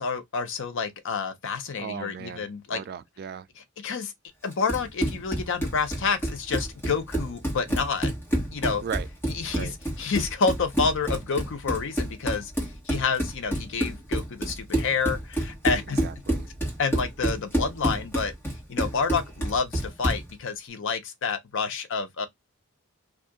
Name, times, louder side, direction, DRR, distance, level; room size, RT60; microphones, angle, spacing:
voice 1, 0.0-2.8 3.8-4.1 4.4-8.1 8.5-8.8 9.3-9.7 10.0-12.5 12.9-16.0 16.8-18.3 18.7-22.3, left 5 dB, 60° left, 0.6 m, -28 dB
voice 2, 1.8-3.5 8.8-9.1 9.5-9.7 16.0-16.5, right 7 dB, 45° right, 0.3 m, -36 dB
Run, 4.5-20.3, right 1 dB, 10° left, 1.3 m, -29 dB
2.6 x 2.4 x 3.5 m
head